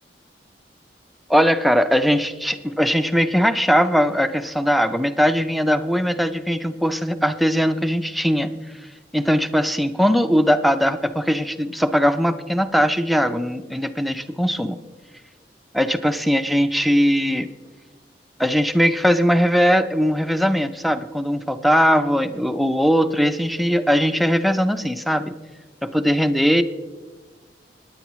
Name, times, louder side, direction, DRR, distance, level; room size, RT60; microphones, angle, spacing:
voice 1, 1.3-8.5 9.1-14.8 15.7-17.5 18.4-25.4 25.8-26.6, equal, ahead, 9 dB, 0.4 m, -20 dB
17.0 x 9.9 x 3.1 m, 1.4 s
head